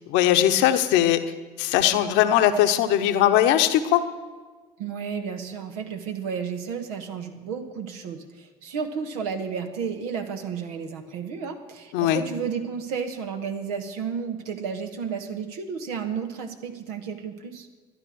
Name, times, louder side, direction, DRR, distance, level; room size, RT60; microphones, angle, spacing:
voice 1, 0.1-1.2 1.6-4.0 11.9-12.2, left 12 dB, 65° left, 9 dB, 1.0 m, -20 dB
voice 2, 4.8-17.7, right 6 dB, 75° right, 6 dB, 1.3 m, -32 dB
12.5 x 10.5 x 6.2 m, 1.4 s
hypercardioid pair, 60°, 20 cm